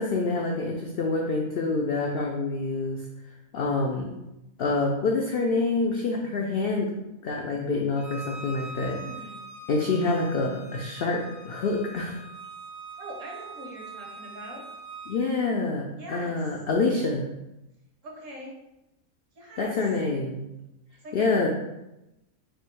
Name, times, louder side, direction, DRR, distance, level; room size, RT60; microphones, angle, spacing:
voice 1, 0.0-3.0 3.5-4.2 4.6-6.9 7.2-9.0 9.7-12.2 15.1-17.3 19.6-20.5 21.1-21.5, left 3 dB, 90° left, 0 dB, 0.5 m, -27 dB
Bowed string instrument, 8.0-15.2, right 2 dB, 80° right, 1.2 m, -43 dB
voice 2, 8.6-9.4 13.0-14.6 16.0-16.4 18.0-18.5 19.3-19.8 21.0-21.5, right 1 dB, 60° right, -2 dB, 1.3 m, -42 dB
3.4 x 2.7 x 4.4 m, 0.92 s
omnidirectional pair, 1.5 m